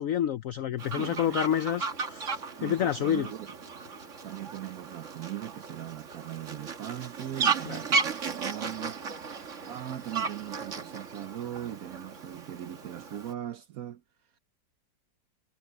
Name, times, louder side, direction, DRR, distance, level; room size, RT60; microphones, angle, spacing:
voice 1, 0.0-3.3 7.7-7.8, left 10 dB, 80° left, 0.7 m, -29 dB
Fowl, 0.8-13.3, right 4 dB, 40° right, 1.8 m, -35 dB
voice 2, 1.0-1.4 2.6-3.6 4.2-9.0 9.7-14.0, right 12 dB, 65° right, 0.9 m, -39 dB
sound 1, 1.8-6.3, left 3 dB, 40° left, 3.9 m, -62 dB
omnidirectional pair, 2.0 m